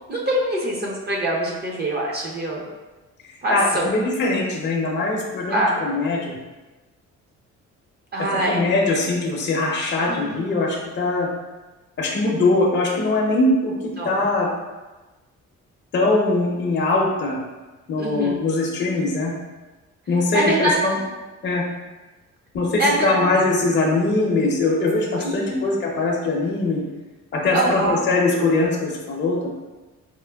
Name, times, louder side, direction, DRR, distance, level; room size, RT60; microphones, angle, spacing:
voice 1, 0.1-2.6 3.4-3.9 5.5-5.8 8.1-8.6 10.1-10.4 14.0-14.2 18.0-18.3 20.3-20.8 22.8-23.3 25.2-25.6 27.5-28.0, right 1 dB, 35° right, -3 dB, 0.7 m, -24 dB
voice 2, 3.5-6.3 8.5-11.3 12.0-13.7 14.0-14.5 15.9-17.4 17.9-19.3 20.1-21.0 21.4-21.6 22.5-26.8 27.3-29.5, left 2 dB, 35° left, -2 dB, 0.6 m, -21 dB
4.3 x 2.1 x 2.2 m, 1.2 s
cardioid pair, 90°, 30 cm